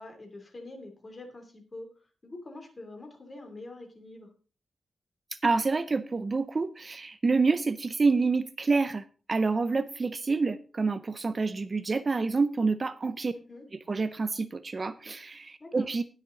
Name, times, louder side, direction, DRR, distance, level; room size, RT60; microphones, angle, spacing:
voice 1, 0.0-1.9 2.2-4.3 13.3-13.6 15.6-15.9, left 2 dB, 30° left, 4 dB, 2.9 m, -45 dB
voice 2, 5.4-13.3 13.9-16.0, right 4 dB, 30° right, 13 dB, 0.5 m, -27 dB
19.5 x 6.5 x 3.8 m, 0.36 s
wide cardioid pair, 150°, 0 cm